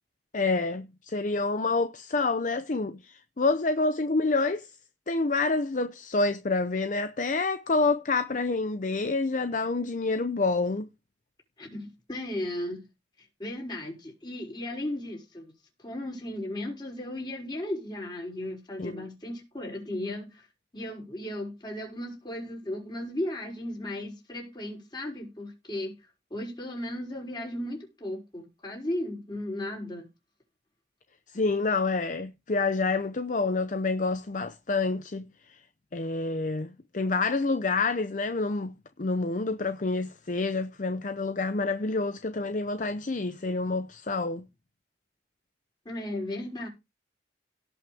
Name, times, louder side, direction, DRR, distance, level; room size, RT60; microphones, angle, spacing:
voice 1, 0.3-4.7 5.1-10.9 18.8-19.1 31.3-35.6 35.9-44.4, left 3 dB, 45° left, 0.7 m, -28 dB
voice 2, 11.6-12.9 13.4-15.5 15.8-20.5 20.7-25.9 26.3-30.0 45.8-46.7, left 1 dB, 25° left, 5.9 m, -35 dB
17.5 x 6.1 x 3.5 m
head